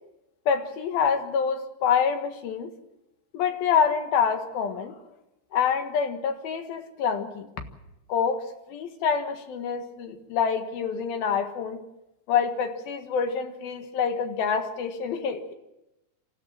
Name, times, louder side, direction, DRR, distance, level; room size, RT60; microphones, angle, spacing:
voice 1, 0.5-2.7 3.3-5.0 5.5-7.5 8.1-11.8 12.3-15.5, left 7 dB, 90° left, 6 dB, 3.5 m, -26 dB
27.5 x 14.5 x 7.6 m, 0.93 s
omnidirectional pair, 4.1 m